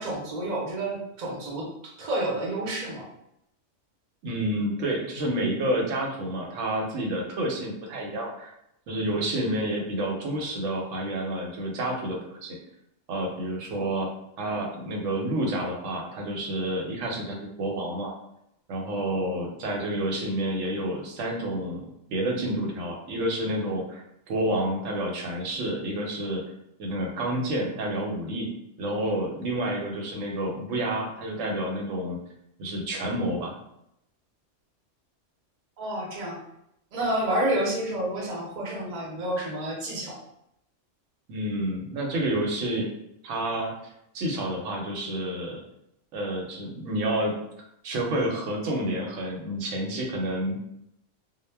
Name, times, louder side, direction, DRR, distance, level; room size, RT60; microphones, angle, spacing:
voice 1, 0.0-3.0 35.8-36.4 36.9-40.2, right 1 dB, 40° right, -3 dB, 0.7 m, -29 dB
voice 2, 4.2-8.5 8.9-12.6 13.1-14.1 14.4-18.1 18.7-21.8 22.1-26.4 26.8-28.5 28.8-32.2 32.6-33.5 41.3-42.9 43.2-45.6 46.1-47.3 47.8-50.6, right 1 dB, 85° right, 0 dB, 1.0 m, -29 dB
2.1 x 2.1 x 3.2 m, 0.79 s
omnidirectional pair, 1.3 m